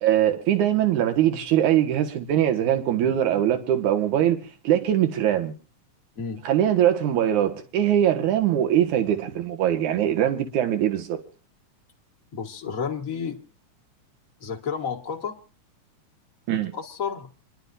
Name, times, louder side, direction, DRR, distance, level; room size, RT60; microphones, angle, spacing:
voice 1, 0.0-5.5 6.4-11.2 16.5-16.7, right 11 dB, 75° right, 2.9 m, -22 dB
voice 2, 12.3-13.4 14.4-15.4 16.5-17.3, left 6 dB, 40° left, 1.3 m, -31 dB
28.5 x 11.5 x 2.6 m
omnidirectional pair, 3.5 m